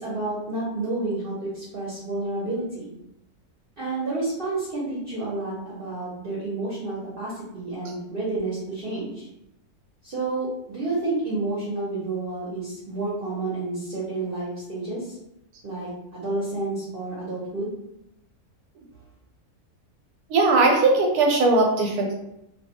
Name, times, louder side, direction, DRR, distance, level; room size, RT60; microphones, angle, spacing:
voice 1, 0.0-2.9 3.8-9.3 10.0-15.1 15.6-17.7, right 2 dB, 50° right, -8 dB, 0.7 m, -30 dB
voice 2, 20.3-22.1, right 3 dB, 85° right, 1 dB, 1.1 m, -19 dB
2.6 x 2.2 x 2.8 m, 0.82 s
omnidirectional pair, 1.6 m